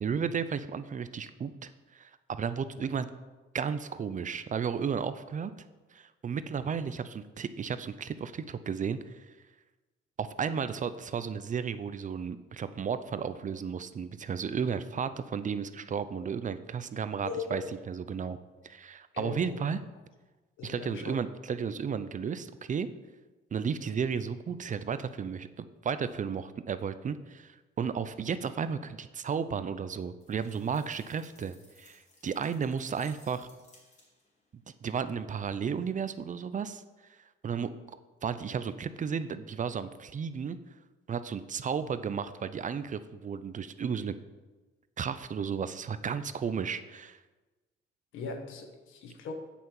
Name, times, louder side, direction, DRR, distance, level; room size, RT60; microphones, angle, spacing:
voice 1, 0.0-3.1 3.5-5.5 5.9-9.3 10.2-17.6 17.9-18.4 18.6-19.8 20.6-22.9 23.5-33.5 34.5-36.8 37.4-37.7 38.2-40.6 41.1-44.1 45.0-47.2, right 6 dB, 40° right, 13 dB, 0.6 m, -33 dB
voice 2, 17.2-17.6 19.1-19.6 20.6-21.2 48.1-49.3, left 5 dB, 85° left, 4 dB, 1.5 m, -39 dB
sound 1, 30.2-34.4, left 2 dB, 35° left, 3.1 m, -60 dB
8.4 x 5.9 x 7.1 m, 1.2 s
cardioid pair, 90°, 20 cm